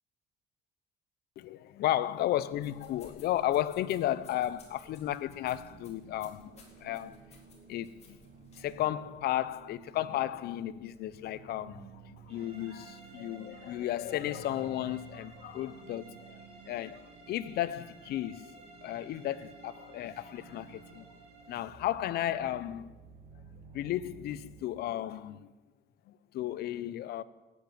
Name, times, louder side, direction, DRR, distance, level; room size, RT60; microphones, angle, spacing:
voice 1, 1.4-7.2 7.7-8.2 8.6-18.5 18.8-21.1 21.5-22.9 23.7-25.5 26.1-27.2, left 13 dB, 70° left, 0.8 m, -34 dB
sound 1, 2.5-8.8, left 4 dB, 40° left, 4.0 m, -59 dB
sound 2, 5.4-24.7, right 7 dB, 60° right, 1.6 m, -54 dB
sound 3, 12.3-21.7, right 2 dB, 35° right, 6.1 m, -55 dB
13.5 x 9.4 x 9.2 m
cardioid pair, 110°, 17 cm